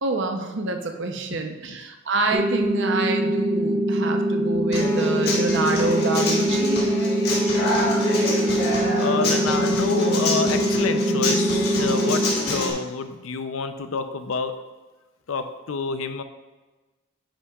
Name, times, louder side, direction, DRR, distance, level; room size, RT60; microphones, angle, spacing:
voice 1, 0.0-6.8, right 2 dB, 60° right, 5 dB, 0.7 m, -27 dB
sound 1, 2.3-12.3, right 1 dB, 45° right, 1.2 m, -23 dB
Human voice / Acoustic guitar, 4.7-12.7, left 1 dB, 50° left, 1.7 m, -26 dB
voice 2, 9.0-14.6 15.3-16.2, left 4 dB, 75° left, 9 dB, 0.5 m, -28 dB
9.7 x 5.6 x 2.4 m, 1.2 s
head